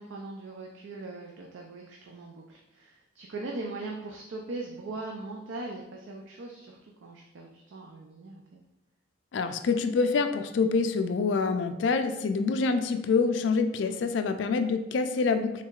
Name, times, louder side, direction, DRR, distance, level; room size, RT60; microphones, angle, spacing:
voice 1, 0.0-8.6 13.8-14.1, right 2 dB, 75° right, 0 dB, 0.4 m, -40 dB
voice 2, 9.3-15.6, left 4 dB, 65° left, 8 dB, 0.3 m, -26 dB
4.5 x 3.5 x 2.4 m, 1.0 s
head